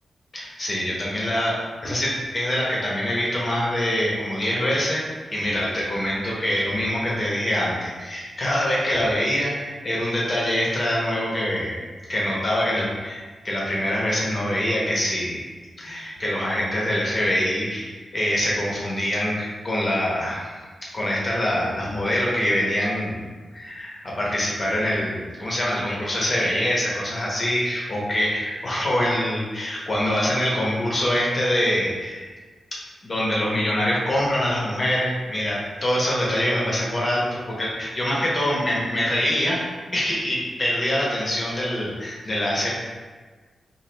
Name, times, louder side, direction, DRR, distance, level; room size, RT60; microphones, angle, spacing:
voice 1, 0.3-5.0 5.3-11.8 12.1-15.4 15.8-23.2 23.5-32.3 32.7-39.6 39.9-42.7, equal, 30° left, -5 dB, 0.7 m, -24 dB
4.0 x 2.4 x 3.1 m, 1.4 s
wide cardioid pair, 125°, 0 cm